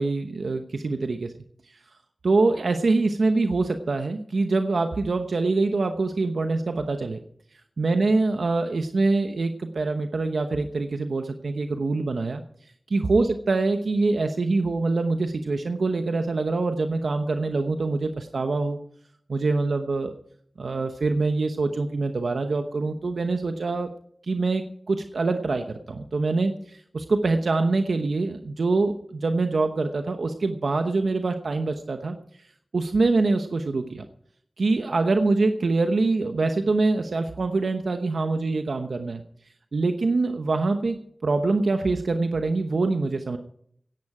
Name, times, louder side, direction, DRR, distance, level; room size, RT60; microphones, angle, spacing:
voice 1, 0.0-1.3 2.2-7.2 7.8-12.4 12.9-18.8 19.3-20.1 20.6-23.9 24.2-32.2 32.7-34.0 34.6-39.2 39.7-43.4, right 3 dB, 85° right, 6 dB, 0.9 m, -24 dB
16.5 x 11.0 x 4.9 m, 0.64 s
cardioid pair, 40°, 0 cm